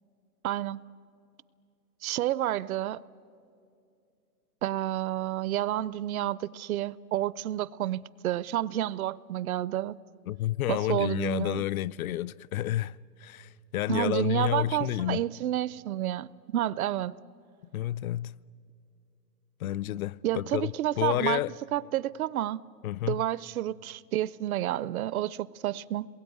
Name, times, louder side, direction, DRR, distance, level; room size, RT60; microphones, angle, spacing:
voice 1, 0.4-0.8 2.0-3.0 4.6-10.0 10.7-11.6 13.9-16.3 16.5-17.2 20.2-21.4 21.7-22.6 23.1-26.1, right 13 dB, 60° right, 0.6 m, -30 dB
voice 2, 10.3-15.2 17.7-18.3 19.6-20.7 21.0-21.5 22.8-23.2, left 13 dB, 60° left, 0.5 m, -30 dB
27.0 x 22.0 x 9.4 m
hypercardioid pair, 140°, 49 cm